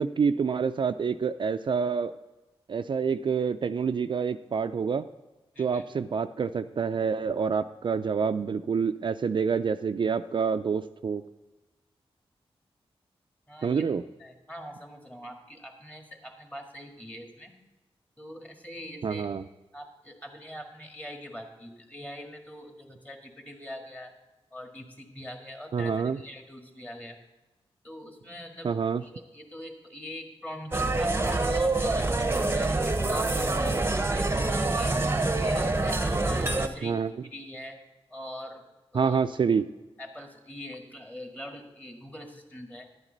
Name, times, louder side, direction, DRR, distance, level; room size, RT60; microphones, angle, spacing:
voice 1, 0.0-2.1 2.7-5.1 5.6-11.2 13.6-14.0 19.0-19.4 25.7-26.2 28.6-29.0 36.8-37.1 38.9-39.6, right 6 dB, 50° right, 9 dB, 0.3 m, -27 dB
voice 2, 5.5-5.9 13.5-17.5 18.2-19.3 19.7-24.1 24.5-27.2 27.8-28.7 29.0-35.0 35.3-37.8 38.1-38.6 38.9-39.2 40.0-42.9, equal, 15° left, 3 dB, 1.8 m, -43 dB
sound 1, 30.7-36.7, right 2 dB, 25° right, 0.7 m, -26 dB
11.0 x 9.0 x 3.9 m, 1.1 s
wide cardioid pair, 80°, 10 cm